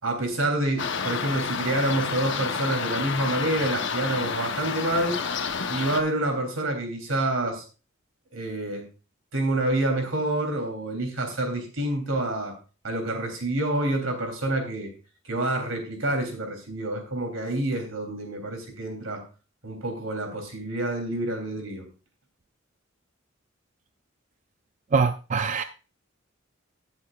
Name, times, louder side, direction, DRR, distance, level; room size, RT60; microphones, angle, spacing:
voice 1, 0.0-5.2 5.7-7.6 8.3-8.9 9.3-12.6 12.8-14.9 15.2-19.2 19.6-21.8, right 1 dB, 80° right, 3 dB, 3.3 m, -27 dB
sound 1, 0.8-6.0, left 5 dB, 65° left, 1.0 m, -30 dB
voice 2, 24.9-25.6, right 5 dB, 35° right, 9 dB, 0.4 m, -23 dB
18.0 x 7.1 x 2.4 m, 0.33 s
head